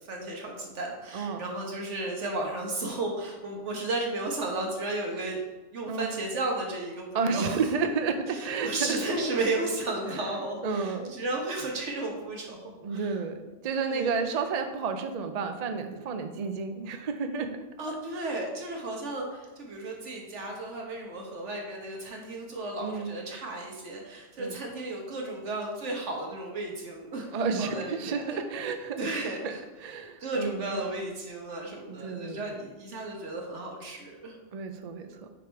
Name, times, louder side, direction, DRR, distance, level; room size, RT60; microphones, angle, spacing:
voice 1, 0.1-5.4 5.7-7.6 8.3-13.2 13.8-14.3 17.8-28.4 29.0-29.6 30.2-34.3, right 2 dB, 75° right, 0 dB, 1.5 m, -34 dB
voice 2, 1.1-1.5 5.9-6.1 7.1-9.0 9.3-9.4 10.6-11.2 12.8-17.6 22.8-23.1 24.4-24.6 27.3-29.1 29.4-29.5 29.8-30.7 31.9-32.6 34.5-35.1, right 5 dB, 50° right, 6 dB, 0.4 m, -31 dB
5.2 x 4.9 x 4.5 m, 1.2 s
omnidirectional pair, 1.2 m